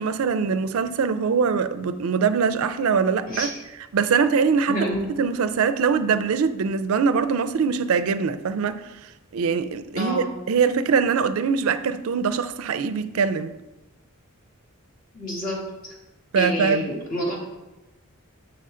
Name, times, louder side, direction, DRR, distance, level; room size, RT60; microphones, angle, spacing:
voice 1, 0.0-3.5 3.9-4.8 5.2-8.8 9.3-13.5 16.3-16.8, right 6 dB, 70° right, 0.4 m, -22 dB
voice 2, 3.3-3.6 4.7-5.1 9.9-10.3 15.1-15.9 16.3-17.4, equal, 40° left, 1.5 m, -28 dB
6.9 x 5.5 x 3.7 m
head